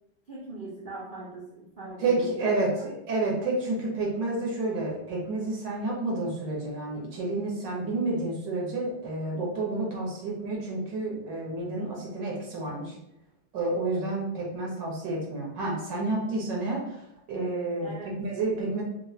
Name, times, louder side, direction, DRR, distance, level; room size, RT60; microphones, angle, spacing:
voice 1, 0.3-2.9 17.8-18.2, right 3 dB, 55° right, -7 dB, 0.5 m, -41 dB
voice 2, 2.0-12.9 13.5-17.0 17.3-18.8, right 2 dB, 85° right, -3 dB, 1.7 m, -30 dB
4.5 x 2.3 x 2.7 m, 0.84 s
omnidirectional pair, 1.9 m